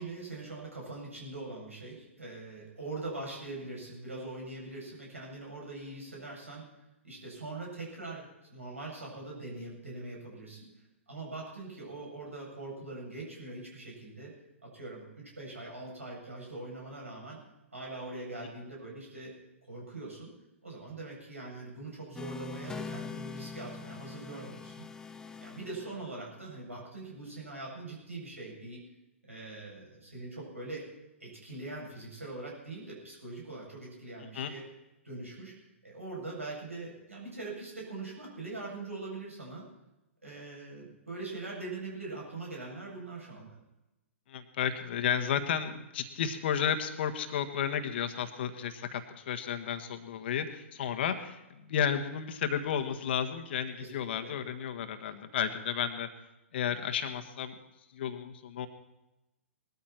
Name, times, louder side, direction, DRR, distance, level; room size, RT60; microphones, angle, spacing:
voice 1, 0.0-6.6 7.0-10.7 11.1-14.3 14.6-17.4 17.7-19.3 19.6-20.3 20.6-24.8 25.4-28.8 29.2-30.9 31.2-34.7 35.0-35.5 35.8-39.7 40.2-43.6 53.7-53.9 54.2-54.3, right 2 dB, 85° right, -2 dB, 7.9 m, -42 dB
sound 1, 22.2-26.4, left 4 dB, 10° left, 0.7 m, -43 dB
voice 2, 44.3-56.1 56.5-57.5 57.9-58.7, left 8 dB, 50° left, 8 dB, 1.5 m, -32 dB
20.0 x 13.5 x 4.5 m, 0.96 s
figure-of-eight pair, 115°, 7 cm